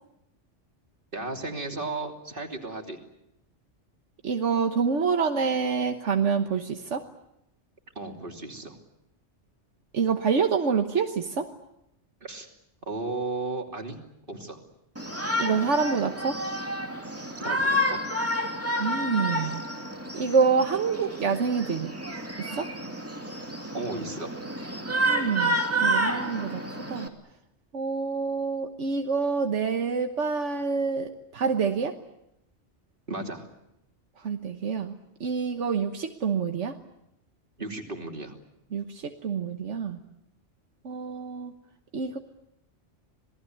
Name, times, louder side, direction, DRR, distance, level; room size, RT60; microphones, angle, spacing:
voice 1, 1.1-3.0 7.9-8.8 12.2-12.5 12.9-14.0 14.3-14.6 17.4-18.0 23.7-24.3 33.1-33.5 37.6-38.4, right 2 dB, 45° right, 3 dB, 3.2 m, -34 dB
voice 2, 4.2-7.0 9.9-11.5 15.4-16.4 18.8-19.6 20.1-21.9 22.4-22.7 25.0-26.6 26.9-27.1 27.7-31.9 34.2-36.8 38.7-40.0 40.8-41.5 41.9-42.2, right 5 dB, 80° right, 5 dB, 1.5 m, -27 dB
Shout, 15.0-27.1, equal, 10° right, 2.4 m, -30 dB
27.0 x 19.5 x 9.4 m, 0.84 s
omnidirectional pair, 1.2 m